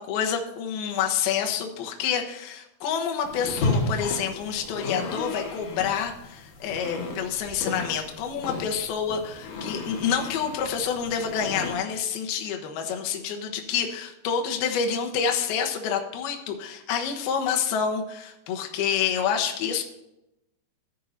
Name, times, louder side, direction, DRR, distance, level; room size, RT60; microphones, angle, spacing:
voice 1, 0.0-19.8, left 7 dB, 75° left, 3 dB, 2.8 m, -28 dB
sound 1, 3.2-11.7, left 3 dB, 55° left, 2.4 m, -33 dB
14.0 x 9.9 x 2.7 m, 0.87 s
omnidirectional pair, 4.7 m